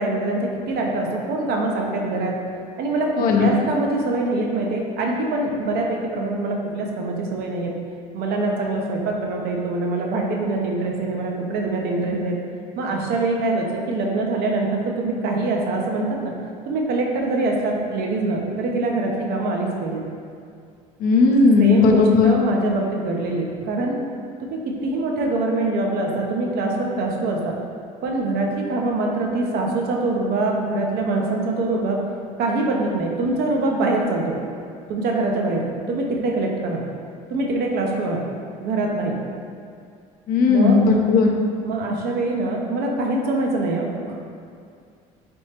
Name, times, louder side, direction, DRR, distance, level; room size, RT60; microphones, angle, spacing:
voice 1, 0.0-2.3 2.8-7.7 8.1-12.4 12.8-16.3 16.7-20.0 21.6-24.0 24.5-27.5 28.0-32.0 32.4-34.4 34.9-36.8 37.3-38.2 38.6-39.2 40.5-40.8 41.6-44.2, right 2 dB, 65° right, 0 dB, 0.6 m, -24 dB
voice 2, 3.2-3.5 21.0-22.4 40.3-41.3, left 4 dB, 55° left, 1 dB, 0.5 m, -16 dB
3.4 x 3.1 x 2.9 m, 2.3 s
hypercardioid pair, 75°, 18 cm